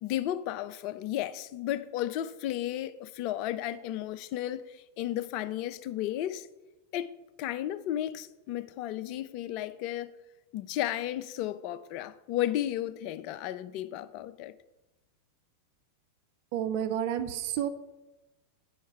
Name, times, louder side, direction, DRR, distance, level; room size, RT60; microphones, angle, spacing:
voice 1, 0.0-6.5 6.9-7.1 7.4-10.1 10.5-14.5, left 12 dB, 45° left, 0.4 m, -33 dB
voice 2, 16.5-17.7, right 10 dB, 45° right, 0.6 m, -30 dB
9.4 x 5.5 x 4.5 m
figure-of-eight pair, 90°, 0 cm